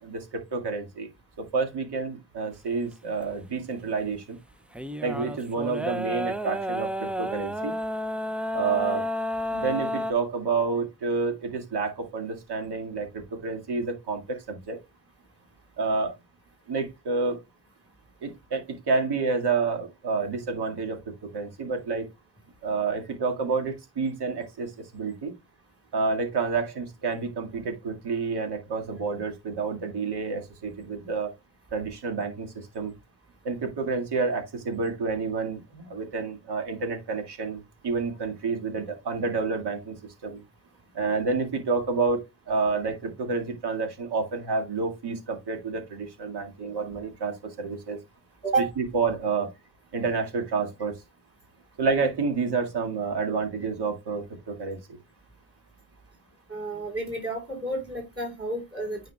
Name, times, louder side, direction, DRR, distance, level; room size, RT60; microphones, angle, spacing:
voice 1, 0.0-1.1 1.4-4.4 5.0-7.7 8.5-9.1 9.5-14.8 15.8-16.1 16.7-17.4 18.2-22.1 22.6-25.3 25.9-31.3 31.7-32.9 33.4-40.0 40.2-40.4 40.9-48.0 48.8-49.5 49.9-51.0 51.8-55.0, right 4 dB, 65° right, 2.1 m, -29 dB
sound 1, 4.7-10.1, equal, 5° right, 0.4 m, -31 dB
voice 2, 56.5-59.0, right 2 dB, 30° right, 4.2 m, -30 dB
9.3 x 5.1 x 2.3 m
cardioid pair, 100°, 44 cm